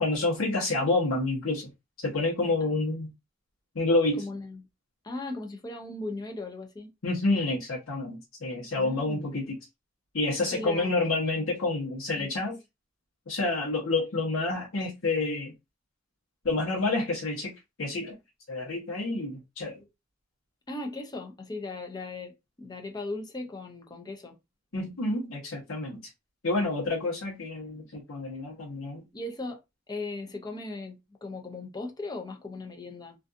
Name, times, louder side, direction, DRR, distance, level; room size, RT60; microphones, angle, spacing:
voice 1, 0.0-1.7 2.0-3.1 3.7-4.2 7.0-9.6 10.1-12.6 13.3-15.5 16.4-17.5 17.8-18.1 18.5-19.8 24.7-26.0 26.4-29.0, left 2 dB, 85° left, 0.9 m, -28 dB
voice 2, 4.2-4.7 5.0-6.9 8.7-9.3 10.5-10.9 12.1-12.3 20.7-24.4 29.1-29.6 29.9-33.2, left 2 dB, 20° left, 0.5 m, -38 dB
2.5 x 2.3 x 2.5 m
head